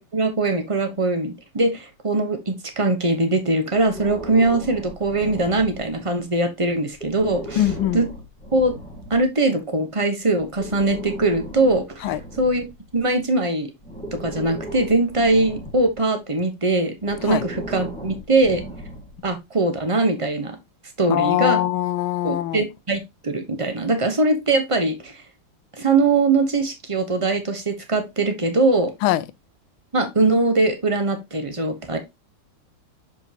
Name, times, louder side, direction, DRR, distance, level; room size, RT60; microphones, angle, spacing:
voice 1, 0.0-7.6 7.9-8.1 8.5-8.7 9.1-12.6 12.9-13.7 14.1-18.6 19.2-20.6 21.0-21.6 22.2-25.2 25.8-28.9 29.9-32.0, right 2 dB, 40° right, 0.4 m, -21 dB
Breathing, 3.7-6.2 6.9-9.3 10.4-13.2 13.8-16.0 17.0-19.3, right 1 dB, 5° left, 1.4 m, -37 dB
voice 2, 7.6-8.0 12.0-12.2 17.2-17.4 21.1-22.6 29.0-29.2, left 14 dB, 80° left, 1.4 m, -22 dB
7.0 x 5.3 x 2.9 m
omnidirectional pair, 2.4 m